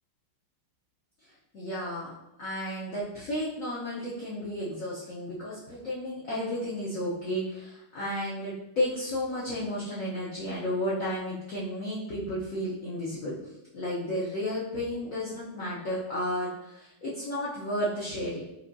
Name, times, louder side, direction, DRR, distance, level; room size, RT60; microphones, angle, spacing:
voice 1, 1.5-2.1 2.4-13.3 13.7-18.4, left 1 dB, 90° left, -7 dB, 0.7 m, -32 dB
4.8 x 2.6 x 2.6 m, 0.89 s
omnidirectional pair, 2.4 m